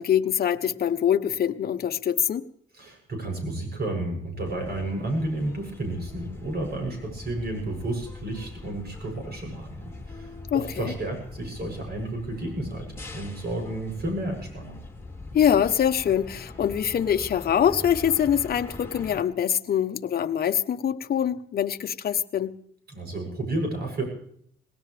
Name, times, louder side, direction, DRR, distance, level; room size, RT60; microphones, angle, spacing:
voice 1, 0.0-2.4 10.5-10.9 15.3-22.6, left 9 dB, 50° left, 7 dB, 1.0 m, -24 dB
voice 2, 2.7-9.8 10.1-14.8 22.9-24.0, right 1 dB, 55° right, 3 dB, 8.0 m, -31 dB
sound 1, 4.4-19.2, left 3 dB, 10° left, 3.2 m, -42 dB
19.5 x 18.0 x 3.4 m, 0.64 s
cardioid pair, 90°, 20 cm